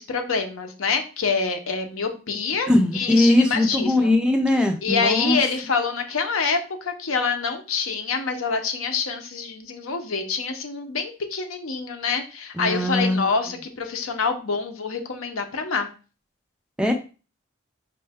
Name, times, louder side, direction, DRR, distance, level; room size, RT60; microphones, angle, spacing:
voice 1, 0.0-4.2 4.8-15.9, left 5 dB, 85° left, 5 dB, 0.7 m, -26 dB
voice 2, 2.7-5.4 12.6-13.3 16.8-16.9, left 1 dB, 5° right, 3 dB, 0.3 m, -20 dB
5.2 x 2.2 x 3.4 m, 0.34 s
head